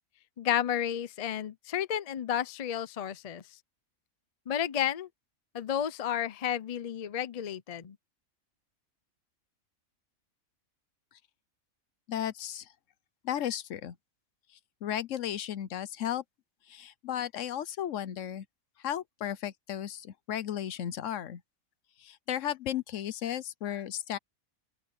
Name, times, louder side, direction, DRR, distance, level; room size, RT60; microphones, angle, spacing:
voice 1, 0.4-3.4 4.5-5.1 5.5-8.0, left 10 dB, 50° left, 0.4 m, -32 dB
voice 2, 12.1-12.7 13.2-14.0 14.8-16.2 16.7-18.5 18.8-21.4 22.0-24.2, left 10 dB, 70° left, 1.0 m, -34 dB
open air
omnidirectional pair, 1.4 m